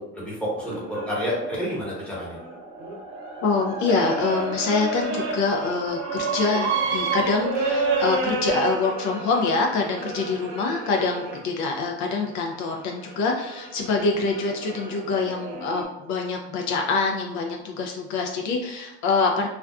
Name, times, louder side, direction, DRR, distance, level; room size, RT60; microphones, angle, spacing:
voice 1, 0.0-2.4, equal, 5° left, -7 dB, 0.9 m, -29 dB
sound 1, 0.6-11.4 12.2-15.8, right 4 dB, 65° right, 0.7 m, -30 dB
voice 2, 3.4-19.5, left 4 dB, 65° left, 1 dB, 0.4 m, -25 dB
2.4 x 2.2 x 2.3 m, 0.87 s
cardioid pair, 115°, 31 cm